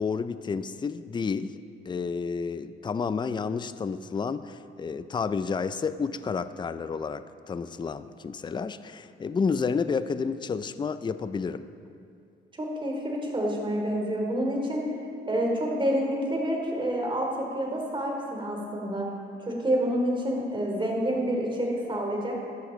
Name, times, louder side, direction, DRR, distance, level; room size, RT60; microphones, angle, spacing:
voice 1, 0.0-1.5 1.9-11.7, left 5 dB, 25° left, 13 dB, 0.4 m, -30 dB
voice 2, 12.6-14.8 15.3-17.3 17.5-19.1 19.4-22.5, equal, 25° right, -1 dB, 3.1 m, -28 dB
14.5 x 11.5 x 3.9 m, 2.4 s
cardioid pair, 90°, 20 cm